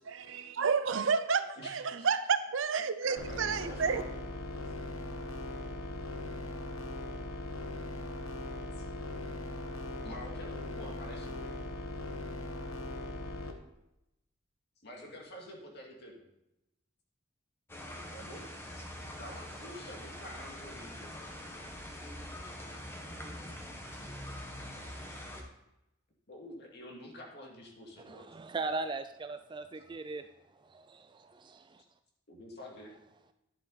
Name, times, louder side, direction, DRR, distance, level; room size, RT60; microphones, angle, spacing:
voice 1, 0.1-4.0, right 5 dB, 65° right, 0.6 m, -30 dB
voice 2, 1.6-2.1 3.0-4.2 4.6-4.7 8.8-8.9 10.0-11.5 14.8-16.3 18.1-18.4 18.7-21.1 26.3-28.3 32.3-32.9, left 1 dB, 50° left, 2.3 m, -48 dB
sound 1, 3.2-13.5, left 1 dB, 85° left, 1.2 m, -40 dB
sound 2, 17.7-25.4, left 1 dB, 10° left, 1.1 m, -44 dB
voice 3, 28.1-30.3 30.6-31.8, right 3 dB, 20° right, 0.3 m, -39 dB
11.0 x 7.5 x 4.0 m
head